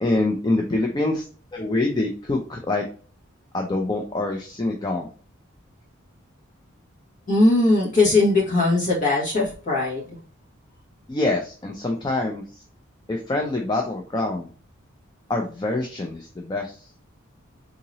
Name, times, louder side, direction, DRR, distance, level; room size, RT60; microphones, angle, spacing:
voice 1, 0.0-1.3 1.5-2.8 3.5-5.1 11.1-12.6 13.1-14.5 15.3-16.8, left 2 dB, 20° left, 1 dB, 0.4 m, -25 dB
voice 2, 7.3-10.0, left 2 dB, 40° left, -4 dB, 1.5 m, -19 dB
3.8 x 2.9 x 2.7 m, 0.39 s
head